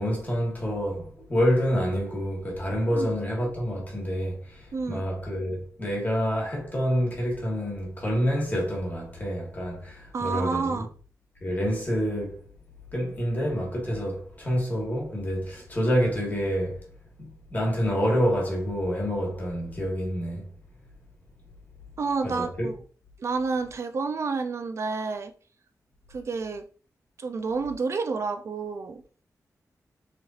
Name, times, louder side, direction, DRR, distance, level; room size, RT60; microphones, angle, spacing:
voice 1, 0.0-10.9 11.4-12.4 12.9-16.8 17.2-20.5 22.2-22.7, equal, 30° left, 1.3 m, -27 dB
voice 2, 4.7-5.0 10.1-10.9 22.0-22.7 23.2-25.3 26.1-26.6 27.2-29.0, right 4 dB, 50° right, 0.4 m, -29 dB
4.0 x 3.2 x 2.4 m
wide cardioid pair, 170°, 6 cm